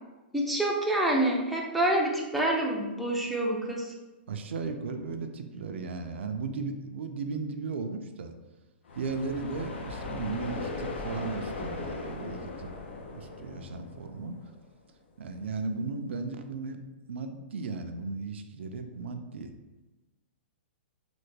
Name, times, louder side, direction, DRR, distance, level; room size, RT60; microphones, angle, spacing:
voice 1, 0.3-3.9, right 1 dB, ahead, -3 dB, 0.3 m, -27 dB
voice 2, 4.3-8.3 8.9-12.7 13.1-14.4 15.2-16.8 17.1-19.5, right 4 dB, 85° right, 6 dB, 0.4 m, -36 dB
sound 1, 8.9-14.6, left 3 dB, 90° left, 0.5 m, -38 dB
3.2 x 2.1 x 3.2 m, 1.1 s
hypercardioid pair, 150°, 6 cm